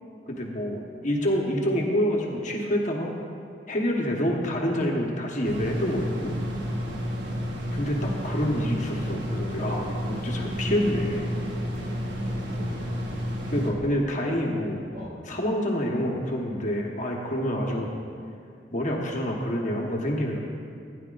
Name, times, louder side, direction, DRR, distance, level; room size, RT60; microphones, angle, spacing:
voice 1, 0.3-3.1 3.7-6.3 7.7-11.3 13.5-14.8 15.2-18.0 18.7-20.4, equal, 45° left, -1 dB, 1.1 m, -27 dB
sound 1, 5.4-13.7, equal, 85° right, 1.3 m, -31 dB
voice 2, 10.2-11.0 12.2-12.9 14.9-15.2 17.7-17.9, equal, 55° right, -4 dB, 2.6 m, -42 dB
15.5 x 10.0 x 2.5 m, 2.4 s
head